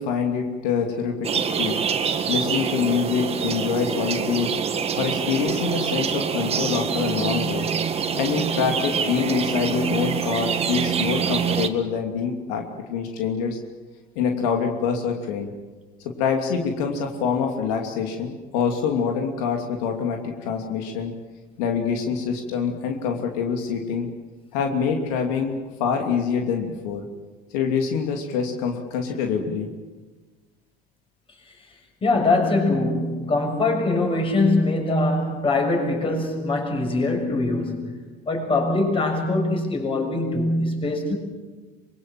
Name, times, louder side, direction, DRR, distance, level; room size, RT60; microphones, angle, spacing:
voice 1, 0.0-1.8 2.3-4.5 5.0-7.7 8.1-12.6 12.9-13.6 14.1-15.5 16.0-21.1 21.6-24.1 24.5-27.0 27.5-29.7, left 6 dB, 85° left, 3 dB, 2.9 m, -25 dB
sound 1, 1.2-11.7, right 6 dB, 30° right, 1.8 m, -25 dB
voice 2, 32.0-38.0 38.3-41.1, left 2 dB, 25° left, 3 dB, 6.8 m, -22 dB
25.0 x 23.0 x 7.7 m, 1.3 s
supercardioid pair, 115°, 20 cm